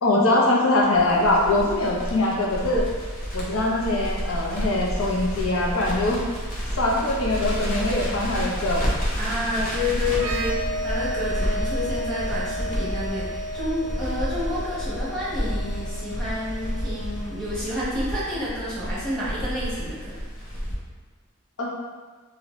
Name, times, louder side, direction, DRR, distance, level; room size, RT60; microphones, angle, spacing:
voice 1, 0.0-2.9 3.3-6.2 6.8-8.8 21.6-21.7, left 2 dB, 80° left, -2 dB, 0.6 m, -22 dB
Crackle, 0.9-20.7, equal, 40° left, 0.7 m, -30 dB
voice 2, 9.2-20.1, left 1 dB, ahead, -10 dB, 1.0 m, -29 dB
sound 1, 10.1-17.6, equal, 80° right, 0.3 m, -34 dB
2.7 x 2.6 x 3.1 m, 1.4 s
head